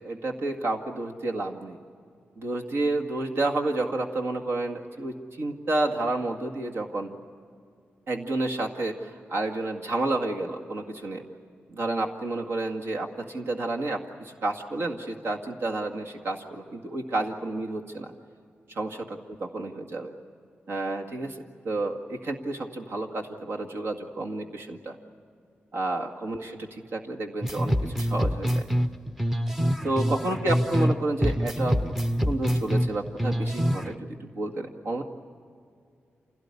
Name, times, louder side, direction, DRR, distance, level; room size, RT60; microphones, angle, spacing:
voice 1, 0.0-1.8 2.4-7.1 8.1-11.2 11.7-18.1 18.7-20.1 20.7-21.4 21.6-25.0 25.7-28.7 29.8-31.9 32.3-35.0, right 2 dB, 65° right, 1 dB, 2.0 m, -30 dB
sound 1, 27.4-31.0 31.2-33.9, equal, 5° right, 0.8 m, -25 dB
27.5 x 17.5 x 9.8 m, 2.3 s
wide cardioid pair, 155°, 4 cm